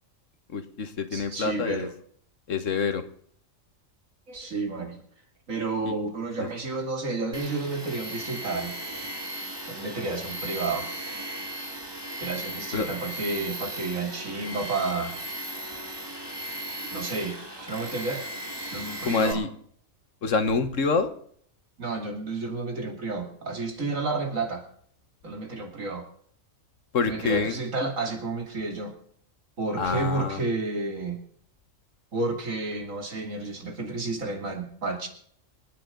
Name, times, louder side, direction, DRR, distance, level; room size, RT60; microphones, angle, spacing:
voice 1, 0.5-1.9 2.5-3.0 5.8-5.9 6.4-6.5 12.7-12.9 19.0-19.5 20.2-21.1 26.9-27.6 29.8-30.4, left 4 dB, 75° left, 10 dB, 1.6 m, -26 dB
voice 2, 1.1-1.9 4.3-5.0 5.5-8.7 9.7-10.9 12.2-15.2 16.9-18.3 18.7-19.4 21.8-24.6 25.2-26.0 27.0-28.9 29.6-31.2 32.1-35.1, right 3 dB, 85° right, 4 dB, 3.0 m, -31 dB
Tools, 7.3-19.3, right 1 dB, 20° right, 2.1 m, -37 dB
27.0 x 9.6 x 3.9 m, 0.62 s
omnidirectional pair, 1.4 m